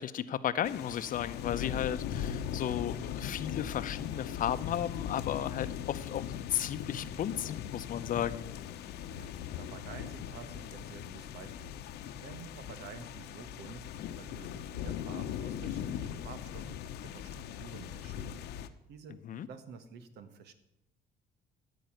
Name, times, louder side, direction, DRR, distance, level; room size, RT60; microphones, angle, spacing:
voice 1, 0.0-8.5 19.2-19.5, left 10 dB, 55° left, 13 dB, 0.8 m, -34 dB
sound 1, 0.6-18.7, left 9 dB, 80° left, 0.9 m, -39 dB
voice 2, 9.1-11.8 12.2-13.8 14.2-18.4 18.9-19.2 19.5-20.5, right 6 dB, 80° right, 9 dB, 1.6 m, -50 dB
14.5 x 5.6 x 9.2 m, 0.85 s
cardioid pair, 110°, 17 cm